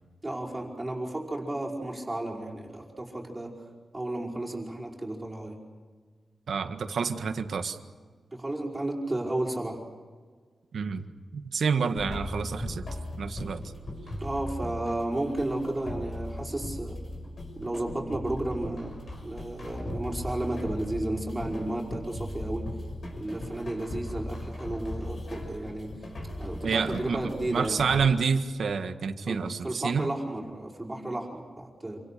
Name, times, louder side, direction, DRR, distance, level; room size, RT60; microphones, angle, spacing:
voice 1, 0.2-3.6 3.9-5.6 8.3-9.8 14.2-17.0 17.6-22.7 23.1-26.1 26.4-27.8 29.3-32.0, right 1 dB, 15° right, -2 dB, 5.3 m, -33 dB
voice 2, 6.5-7.8 10.7-11.0 11.3-12.9 13.2-13.6 26.6-30.1, right 5 dB, 80° right, 7 dB, 1.7 m, -28 dB
sound 1, 12.0-28.0, left 1 dB, 50° left, 6.2 m, -38 dB
28.0 x 25.5 x 6.8 m, 1.5 s
wide cardioid pair, 140°, 0 cm